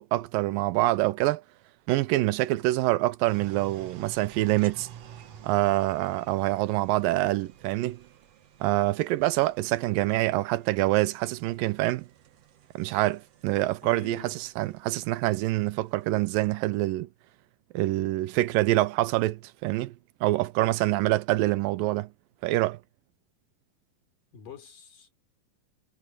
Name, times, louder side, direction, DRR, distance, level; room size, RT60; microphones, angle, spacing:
voice 1, 0.0-1.4 1.9-4.9 5.4-8.0 8.6-12.1 12.8-17.1 17.7-19.9 20.2-22.1 22.4-22.8, right 17 dB, 85° right, 2.4 m, -26 dB
sound 1, 3.3-16.5, right 9 dB, 55° right, 2.2 m, -51 dB
voice 2, 13.8-14.3 24.3-25.1, left 5 dB, 70° left, 5.7 m, -46 dB
omnidirectional pair, 3.9 m